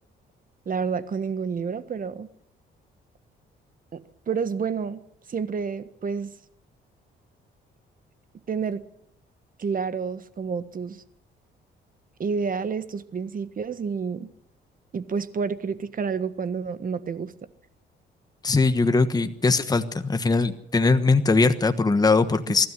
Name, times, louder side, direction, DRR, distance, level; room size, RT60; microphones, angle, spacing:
voice 1, 0.6-2.3 3.9-4.0 4.3-5.0 5.3-6.3 8.5-8.8 9.6-11.0 12.2-14.3 14.9-17.3, right 5 dB, 45° right, 13 dB, 1.5 m, -29 dB
voice 2, 18.4-22.7, left 3 dB, 20° left, 9 dB, 1.3 m, -21 dB
24.0 x 13.0 x 9.8 m, 0.73 s
cardioid pair, 90°, 20 cm